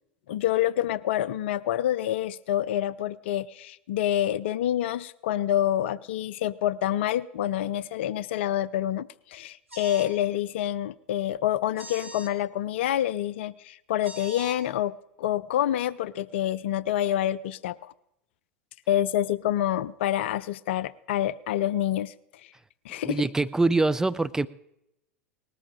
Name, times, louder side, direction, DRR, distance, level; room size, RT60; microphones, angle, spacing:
voice 1, 0.3-17.9 18.9-22.1 22.9-23.2, left 12 dB, 65° left, 20 dB, 0.5 m, -27 dB
sound 1, 9.7-10.1 11.8-12.3 14.0-14.6, right 1 dB, 90° right, 1.7 m, -42 dB
voice 2, 23.0-24.5, right 3 dB, 10° right, 13 dB, 0.5 m, -24 dB
19.5 x 13.5 x 3.8 m, 0.81 s
figure-of-eight pair, 85°, 7 cm